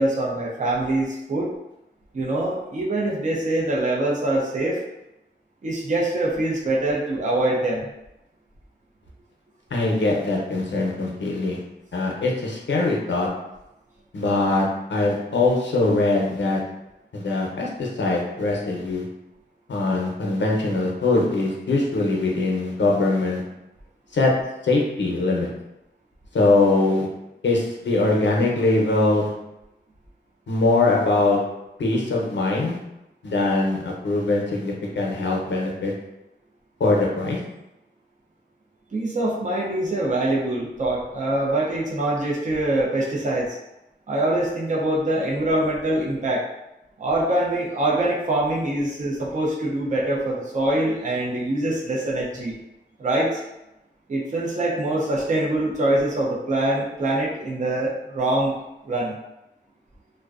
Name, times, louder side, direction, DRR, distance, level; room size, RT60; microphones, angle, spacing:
voice 1, 0.0-1.5 2.1-4.8 5.6-7.9 38.9-43.6 44.1-46.4 47.0-52.6 53.0-53.3 54.1-58.6 58.9-59.1, right 1 dB, 40° right, -4 dB, 0.5 m, -24 dB
voice 2, 9.7-11.6 11.9-13.3 14.1-16.6 17.1-19.0 19.7-23.4 24.1-24.3 24.6-25.5 26.3-27.1 27.4-29.3 30.5-31.4 31.8-32.8 33.2-35.9 36.8-37.4, left 2 dB, 80° left, -2 dB, 0.5 m, -22 dB
2.5 x 2.1 x 2.4 m, 0.91 s
wide cardioid pair, 100°, 19 cm